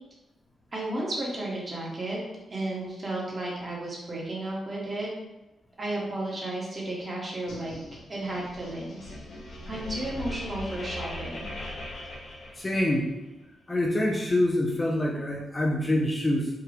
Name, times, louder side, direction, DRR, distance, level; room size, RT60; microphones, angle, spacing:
voice 1, 0.7-2.2 2.5-5.1 5.8-7.7 8.1-9.1 9.7-11.5, right 1 dB, 30° right, -4 dB, 1.2 m, -33 dB
Metallic Fx, 7.5-13.1, left 1 dB, 75° left, 1.0 m, -40 dB
voice 2, 12.6-13.1 13.7-16.5, left 1 dB, 20° left, -1 dB, 0.5 m, -25 dB
4.5 x 2.3 x 3.3 m, 0.98 s
cardioid pair, 115°, 0 cm